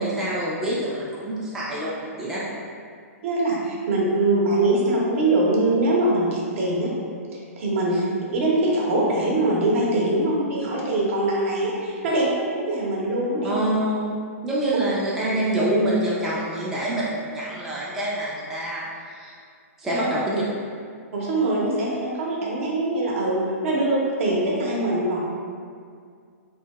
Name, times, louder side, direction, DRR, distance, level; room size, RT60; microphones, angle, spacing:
voice 1, 0.0-2.4 13.4-14.1 14.4-18.8 19.1-19.3 19.8-20.4, right 1 dB, 5° right, -8 dB, 0.3 m, -26 dB
voice 2, 3.2-6.9 7.3-8.0 8.3-13.6 19.9-20.1 21.1-25.2, right 2 dB, 60° right, -4 dB, 0.7 m, -23 dB
2.8 x 2.7 x 2.3 m, 2.2 s
hypercardioid pair, 145°, 8 cm